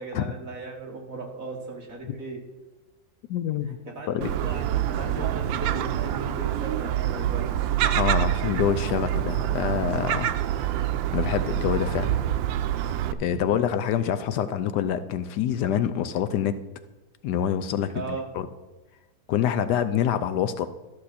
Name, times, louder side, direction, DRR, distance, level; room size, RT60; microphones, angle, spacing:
voice 1, 0.0-2.4 3.9-7.6 13.3-13.6 17.9-18.3, right 2 dB, 45° right, 0 dB, 2.1 m, -37 dB
voice 2, 3.3-3.7 4.1-4.3 7.9-10.3 10.6-10.9 11.1-12.3 13.2-16.6 17.2-18.0 18.3-18.5 19.3-20.7, left 9 dB, 75° left, 12 dB, 1.1 m, -26 dB
Gull seagull, 4.2-13.1, right 12 dB, 85° right, 1.3 m, -26 dB
13.0 x 6.7 x 4.2 m, 1.1 s
omnidirectional pair, 2.0 m